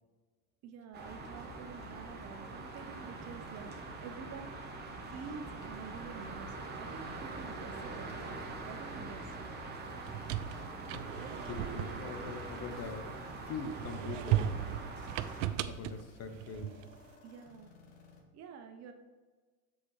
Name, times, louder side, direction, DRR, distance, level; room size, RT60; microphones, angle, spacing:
voice 1, 0.6-3.7 4.0-4.7 5.1-8.4 8.6-9.3 17.2-17.7 18.3-18.9, right 6 dB, 40° right, 6 dB, 0.8 m, -48 dB
sound 1, 0.9-15.5, right 3 dB, 25° right, 1.2 m, -43 dB
sound 2, 9.9-13.1 13.6-17.0, right 12 dB, 70° right, 0.5 m, -37 dB
sound 3, 10.2-18.2, left 4 dB, 65° left, 1.5 m, -59 dB
voice 2, 10.4-13.1 13.5-14.5 15.7-16.7, left 5 dB, 40° left, 7 dB, 0.9 m, -43 dB
7.4 x 4.2 x 4.7 m, 1.3 s
supercardioid pair, 115°, 40 cm